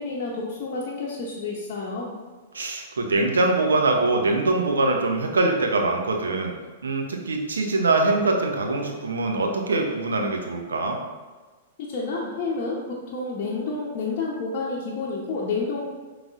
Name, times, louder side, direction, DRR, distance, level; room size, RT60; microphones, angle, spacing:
voice 1, 0.0-2.1 11.8-15.8, left 3 dB, 50° left, -5 dB, 0.7 m, -29 dB
voice 2, 2.5-6.5 6.8-11.0, right 2 dB, 85° right, 2 dB, 0.6 m, -23 dB
5.3 x 3.1 x 2.4 m, 1.4 s
hypercardioid pair, 115°, 0 cm